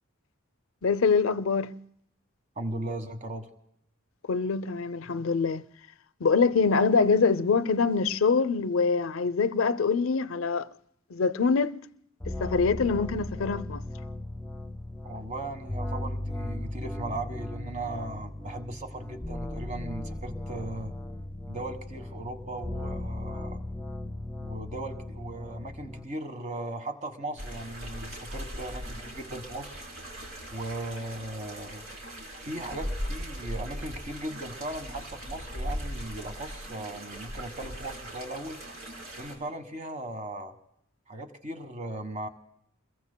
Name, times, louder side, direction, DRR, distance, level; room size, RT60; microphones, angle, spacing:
voice 1, 0.8-1.7 4.3-5.6 6.2-10.7 11.1-11.7 12.3-13.8, left 5 dB, 75° left, 0.6 m, -24 dB
voice 2, 2.6-3.5 15.0-20.9 21.5-23.6 24.4-29.7 30.5-31.8 32.4-38.6 39.2-40.5 41.1-42.3, right 1 dB, 35° right, 1.4 m, -37 dB
sound 1, 12.2-26.0, left 1 dB, 5° left, 0.9 m, -37 dB
sound 2, 27.4-39.3, equal, 75° right, 3.9 m, -39 dB
29.0 x 22.0 x 2.2 m
head